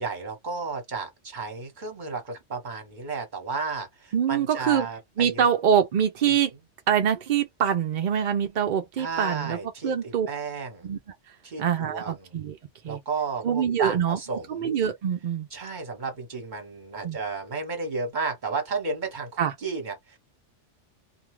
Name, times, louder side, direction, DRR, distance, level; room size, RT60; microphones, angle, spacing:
voice 1, 0.0-5.5 9.0-10.9 11.4-12.3 12.9-14.7 15.5-20.2, right 4 dB, 40° right, 1.2 m, -33 dB
voice 2, 4.1-4.9 5.2-6.5 6.9-9.6 9.8-10.3 10.8-11.0 11.6-12.6 12.8-13.0 13.4-14.2 14.5-15.5 17.0-17.2 19.4-19.5, right 8 dB, 60° right, 0.5 m, -24 dB
2.6 x 2.3 x 3.1 m
omnidirectional pair, 1.2 m